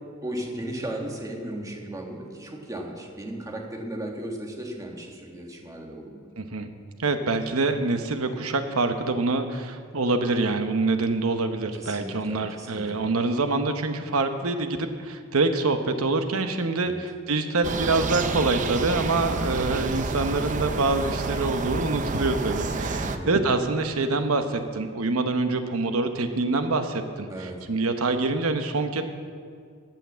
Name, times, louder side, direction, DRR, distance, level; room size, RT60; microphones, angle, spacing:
voice 1, 0.2-6.2 11.7-13.1 16.8-17.0 21.4-21.5 23.0-23.3 27.3-27.6, right 1 dB, 15° right, 0 dB, 1.5 m, -36 dB
voice 2, 6.4-6.7 7.0-29.0, right 3 dB, 80° right, 7 dB, 1.0 m, -25 dB
sound 1, 17.6-23.2, right 3 dB, 35° right, 0.6 m, -29 dB
16.0 x 5.9 x 7.3 m, 2.1 s
head